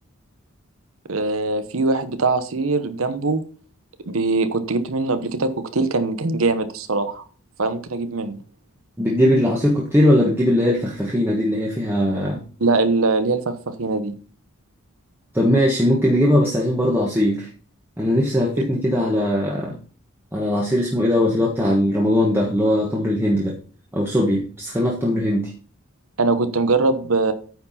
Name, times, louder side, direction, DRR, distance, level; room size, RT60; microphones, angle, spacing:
voice 1, 1.1-3.4 4.1-7.2 7.6-8.4 12.6-14.1 26.2-27.3, right 3 dB, 75° right, 11 dB, 0.9 m, -22 dB
voice 2, 9.0-12.4 15.3-17.5 18.0-19.8 20.3-23.5 23.9-25.5, left 1 dB, 10° right, -4 dB, 1.3 m, -20 dB
9.3 x 4.7 x 5.6 m, 0.41 s
head